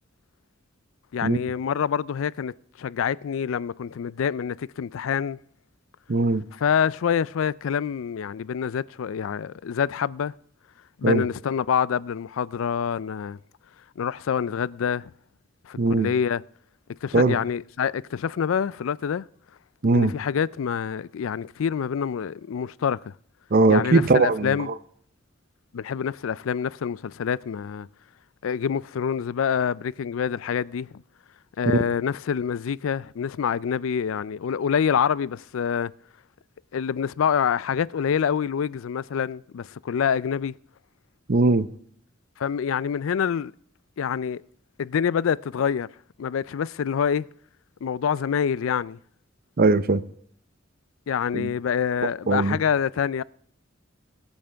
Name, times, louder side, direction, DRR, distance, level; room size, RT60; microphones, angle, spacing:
voice 1, 1.1-5.4 6.6-10.3 11.0-13.4 14.0-15.1 15.7-16.4 17.0-19.3 19.9-23.1 23.7-24.7 25.7-27.9 28.4-31.0 31.6-35.9 36.7-40.6 42.4-43.5 44.0-44.4 44.8-45.9 46.2-47.3 47.8-49.0 51.1-53.2, left 7 dB, 85° left, 0.4 m, -26 dB
voice 2, 6.1-6.4 11.0-11.3 15.8-16.1 17.1-17.4 19.8-20.1 23.5-24.7 31.7-31.8 41.3-41.7 49.6-50.0 51.3-51.5 52.3-52.6, right 3 dB, 50° right, 0.7 m, -20 dB
22.0 x 8.8 x 3.5 m
head